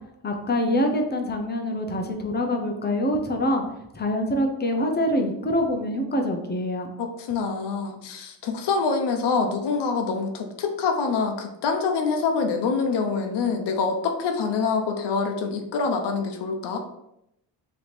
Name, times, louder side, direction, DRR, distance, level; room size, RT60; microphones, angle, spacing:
voice 1, 0.2-3.6 3.9-6.9, left 1 dB, 25° left, 3 dB, 0.7 m, -25 dB
voice 2, 7.0-16.8, left 5 dB, 65° left, 3 dB, 0.7 m, -25 dB
3.4 x 2.9 x 4.3 m, 0.82 s
cardioid pair, 110°, 44 cm